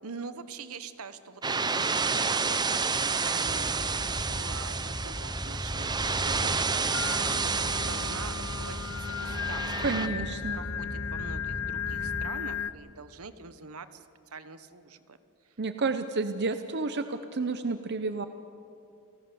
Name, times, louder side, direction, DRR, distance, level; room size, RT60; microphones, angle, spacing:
voice 1, 0.0-2.8 3.2-9.9 10.5-14.0 14.3-15.2 15.4-15.5, right 4 dB, 70° right, 12 dB, 1.2 m, -44 dB
sound 1, 1.4-10.1, right 4 dB, 20° right, 0.8 m, -30 dB
sound 2, 3.4-12.3, left 1 dB, 10° left, 0.7 m, -38 dB
Singing, 6.9-12.7, left 8 dB, 65° left, 0.6 m, -35 dB
voice 2, 9.8-10.6 15.6-18.3, right 3 dB, 50° right, 9 dB, 0.8 m, -30 dB
29.0 x 18.5 x 7.0 m, 2.6 s
head